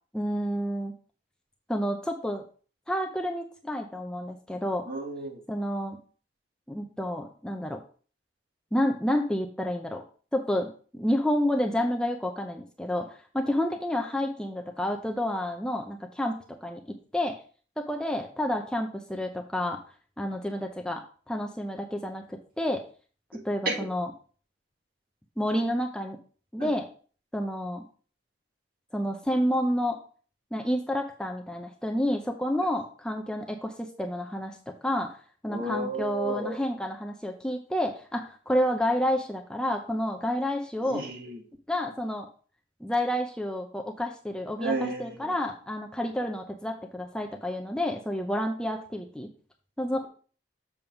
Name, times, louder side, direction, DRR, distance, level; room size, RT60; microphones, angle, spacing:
voice 1, 0.1-0.9 1.7-2.4 2.9-4.9 5.5-6.0 6.7-7.8 8.7-10.0 10.3-16.4 16.6-16.8 17.1-17.4 17.8-19.8 20.2-22.8 23.4-24.1 25.4-26.2 26.5-26.9 27.3-27.8 28.9-30.0 30.5-34.6 34.8-35.2 35.4-41.0 41.7-42.3 42.8-49.3 49.8-50.1, left 1 dB, 5° left, 2 dB, 0.6 m, -29 dB
voice 2, 4.9-5.4 26.6-26.7 35.5-36.6 40.8-41.4 44.6-45.3, right 2 dB, 55° right, 1 dB, 2.0 m, -33 dB
7.0 x 3.5 x 5.8 m, 0.40 s
head